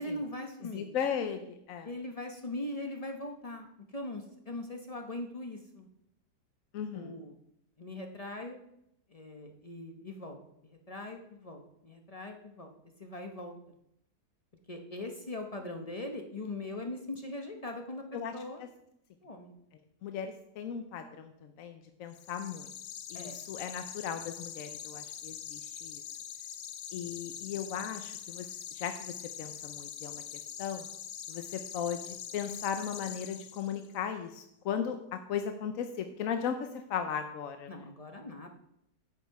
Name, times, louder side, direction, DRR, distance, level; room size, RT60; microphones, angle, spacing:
voice 1, 0.0-0.9 1.8-3.7 3.9-5.9 6.9-7.3 7.8-8.6 9.1-10.4 10.7-12.7 13.0-13.5 14.7-18.6 19.2-19.5 23.1-23.4 37.7-38.5, left 1 dB, 30° left, 3 dB, 0.7 m, -40 dB
voice 2, 0.7-1.9 6.7-7.2 18.1-18.3 18.6-18.7 20.0-22.7 23.1-26.0 26.9-30.2 30.6-30.9 31.3-37.9, left 7 dB, 65° left, 7 dB, 0.9 m, -37 dB
sound 1, 22.1-33.9, left 9 dB, 90° left, 1.4 m, -44 dB
9.5 x 7.3 x 4.7 m, 0.78 s
omnidirectional pair, 1.8 m